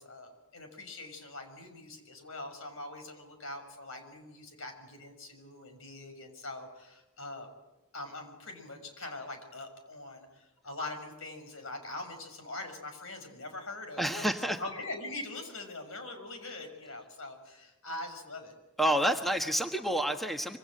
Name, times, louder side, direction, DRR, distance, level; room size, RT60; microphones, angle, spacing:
voice 1, 0.0-7.5 7.9-18.5, left 2 dB, 65° left, 6 dB, 6.5 m, -43 dB
voice 2, 14.0-14.6 18.8-20.6, right 1 dB, ahead, 4 dB, 1.3 m, -29 dB
27.0 x 25.5 x 7.7 m, 1.0 s
head